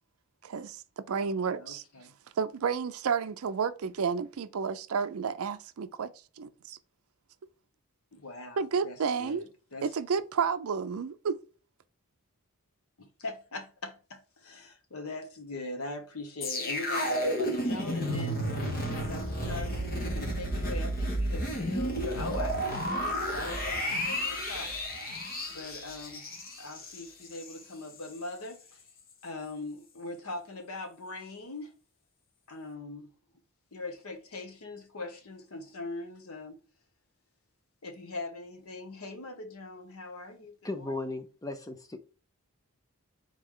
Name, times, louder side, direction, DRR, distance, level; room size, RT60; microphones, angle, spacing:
voice 1, 0.4-1.8 2.4-6.1 6.4-6.8 8.6-9.5 9.8-11.4, right 6 dB, 70° right, 0.4 m, -31 dB
voice 2, 1.5-2.1 8.1-9.9 13.0-18.4 19.1-24.7 25.5-26.3 26.6-28.8 29.2-31.8 32.5-33.1 33.7-36.6 37.8-40.5, left 2 dB, 70° left, 1.0 m, -41 dB
sound 1, 16.4-27.6 27.9-28.1, equal, 40° left, 1.0 m, -32 dB
voice 3, 40.6-42.0, left 2 dB, 15° left, 0.5 m, -36 dB
3.9 x 3.2 x 3.7 m
head